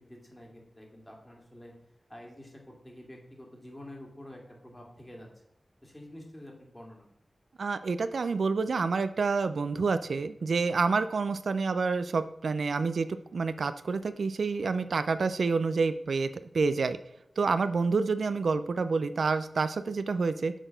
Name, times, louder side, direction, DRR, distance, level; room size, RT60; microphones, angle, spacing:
voice 1, 0.0-1.7 2.1-5.3 5.8-7.1 14.6-15.2 17.4-17.5, left 1 dB, 20° left, 0 dB, 2.1 m, -48 dB
voice 2, 7.6-13.1 13.3-16.3 16.5-17.0 17.4-20.5, right 4 dB, 85° right, 12 dB, 0.3 m, -28 dB
6.3 x 3.9 x 5.1 m, 0.76 s
cardioid pair, 50°, 0 cm